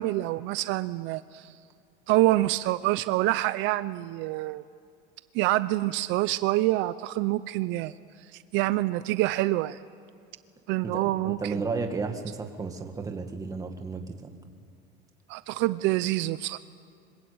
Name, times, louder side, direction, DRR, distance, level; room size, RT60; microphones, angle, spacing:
voice 1, 0.0-1.5 2.1-4.6 5.3-7.9 8.3-9.8 10.7-11.6 15.3-16.6, right 17 dB, 70° right, 14 dB, 0.6 m, -26 dB
voice 2, 10.8-14.3, right 4 dB, 15° right, 4 dB, 1.9 m, -33 dB
25.5 x 22.5 x 8.7 m, 2.3 s
cardioid pair, 170°, 20 cm